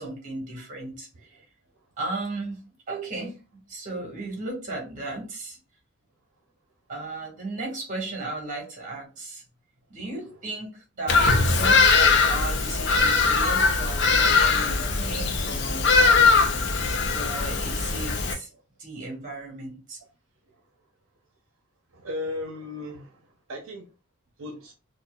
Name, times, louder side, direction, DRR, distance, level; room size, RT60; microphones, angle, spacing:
voice 1, 0.0-1.3 2.0-2.6 2.9-3.4 3.7-5.6 6.9-9.4 9.9-16.7 17.1-18.5 18.8-20.0, right 2 dB, 35° right, 1.5 m, -35 dB
Bird vocalization bird call bird song, 11.1-18.3, left 4 dB, 50° left, 0.6 m, -21 dB
voice 2, 21.9-23.2 23.5-23.9 24.4-24.7, left 2 dB, 65° right, 0.8 m, -36 dB
4.2 x 2.5 x 2.3 m
head